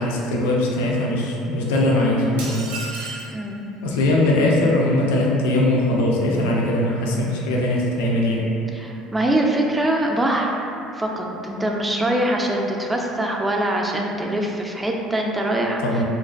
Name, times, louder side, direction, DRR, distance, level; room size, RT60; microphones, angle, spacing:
voice 1, 0.0-2.7 3.8-8.5 15.8-16.0, left 1 dB, 80° left, -2 dB, 0.3 m, -20 dB
sound 1, 2.4-3.4, right 3 dB, 85° right, 0.4 m, -32 dB
voice 2, 3.3-3.7 8.7-16.0, right 1 dB, 15° right, 0 dB, 0.3 m, -23 dB
2.4 x 2.1 x 2.3 m, 2.7 s
hypercardioid pair, 75°, 0 cm